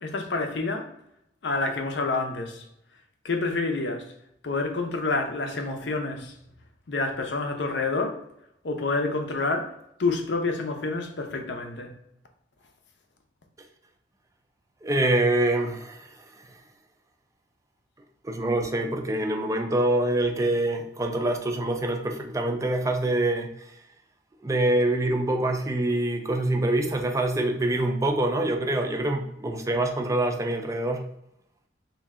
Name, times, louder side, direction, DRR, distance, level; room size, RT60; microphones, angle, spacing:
voice 1, 0.0-0.9 1.4-2.6 3.2-4.1 4.4-6.3 6.9-8.2 8.6-9.7 10.0-12.0, left 3 dB, 65° left, 0.6 m, -28 dB
voice 2, 14.8-16.1 18.2-23.5 24.4-31.1, right 1 dB, 15° right, 0.4 m, -25 dB
3.2 x 2.7 x 3.5 m
head